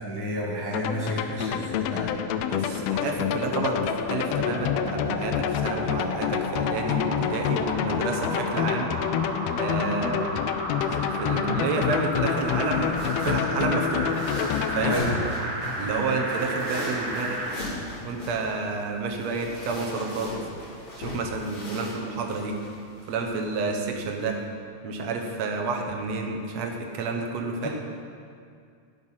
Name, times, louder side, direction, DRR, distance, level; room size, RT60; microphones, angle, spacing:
voice 1, 0.1-2.1 14.8-15.2 27.6-27.7, equal, 25° left, -5 dB, 0.5 m, -30 dB
sound 1, 0.7-14.9, left 10 dB, 85° left, 1.4 m, -28 dB
voice 2, 2.5-8.9 9.6-10.3 10.9-13.0 13.2-14.1 14.8-15.0 15.8-17.4 18.0-20.3 21.0-22.6 23.1-24.4 24.8-27.7, right 4 dB, 70° right, 2 dB, 2.1 m, -30 dB
sound 2, 2.6-17.6 18.1-18.2, right 1 dB, 55° right, 2.4 m, -33 dB
sound 3, 11.8-24.4, left 1 dB, 65° left, 4.7 m, -39 dB
11.5 x 8.0 x 5.7 m, 2.3 s
omnidirectional pair, 3.3 m